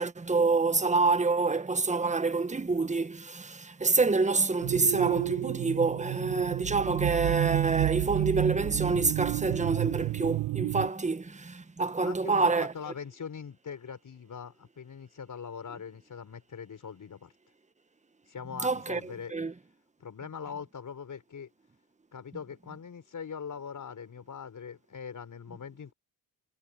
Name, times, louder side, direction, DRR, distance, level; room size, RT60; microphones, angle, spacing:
voice 1, 0.0-12.7 18.6-19.0 19.3-19.5, right 3 dB, 15° right, 1.6 m, -27 dB
sound 1, 4.6-10.9, right 17 dB, 65° right, 0.9 m, -30 dB
voice 2, 12.0-17.3 18.3-19.3 20.0-21.5 22.1-25.9, left 6 dB, 40° left, 6.1 m, -42 dB
hypercardioid pair, 65°, 45 cm